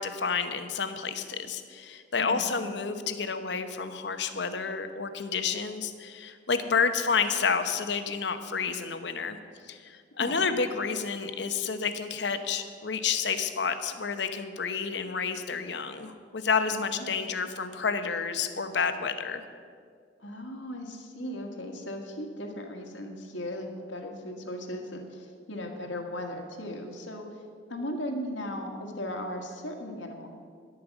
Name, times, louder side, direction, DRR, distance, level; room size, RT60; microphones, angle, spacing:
voice 1, 0.0-9.4 9.7-19.4, left 5 dB, 65° left, 9 dB, 0.9 m, -30 dB
voice 2, 2.2-2.6 10.2-10.4 16.7-17.0 20.2-27.3 27.7-30.3, left 1 dB, 85° left, 2 dB, 1.8 m, -37 dB
11.5 x 8.7 x 7.2 m, 2.1 s
head